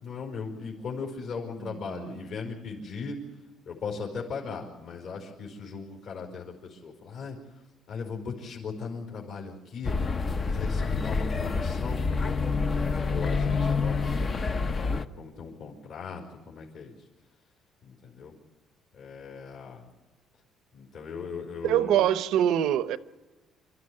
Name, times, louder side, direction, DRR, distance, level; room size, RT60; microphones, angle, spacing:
voice 1, 0.0-3.2 3.6-7.4 7.9-10.0 10.4-14.1 14.7-16.9 17.8-18.3 18.9-19.8 20.7-22.1, left 5 dB, 60° left, 4.8 m, -38 dB
voice 2, 1.6-2.2 21.6-23.0, right 11 dB, 75° right, 0.9 m, -25 dB
sound 1, 9.8-15.1, left 4 dB, 30° left, 0.7 m, -27 dB
28.5 x 13.0 x 9.8 m
cardioid pair, 170°, 0 cm